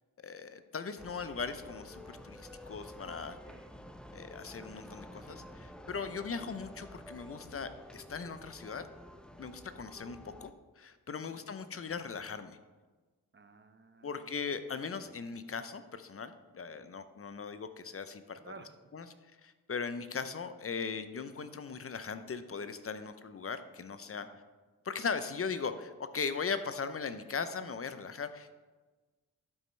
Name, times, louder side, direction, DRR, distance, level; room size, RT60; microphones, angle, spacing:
voice 1, 0.2-3.4 4.1-8.8 9.4-10.5 10.8-12.6 14.0-18.4 18.9-19.0 19.4-24.3 24.8-28.6, left 5 dB, 40° left, 11 dB, 0.6 m, -39 dB
sound 1, 1.0-10.5, equal, ahead, 0.6 m, -50 dB
voice 2, 3.4-3.8 6.0-6.1 9.7-9.9 11.1-11.5 13.3-15.1 16.7-16.9 18.4-18.8 24.2-24.4, right 4 dB, 30° right, 8 dB, 0.9 m, -56 dB
11.5 x 5.3 x 3.3 m, 1.3 s
cardioid pair, 50°, 37 cm